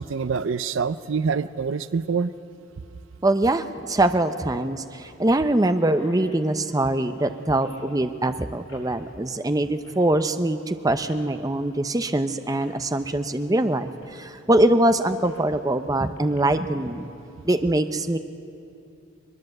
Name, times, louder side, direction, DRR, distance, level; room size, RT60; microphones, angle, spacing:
voice 1, 0.0-2.3, right 5 dB, 65° right, 15 dB, 0.5 m, -26 dB
sound 1, 2.0-2.1 3.9-4.0 4.4-4.5 5.0-5.2 5.5-5.6 5.8-8.0 8.7-8.9 9.8-10.1 11.0-11.3 12.1-12.2 12.6-12.8 14.0-14.2 14.6-15.5 16.2-16.4, left 1 dB, 90° left, 6.6 m, -50 dB
voice 2, 3.2-17.1 17.4-18.2, right 1 dB, 15° right, 9 dB, 0.6 m, -23 dB
22.0 x 21.5 x 7.9 m, 2.7 s
head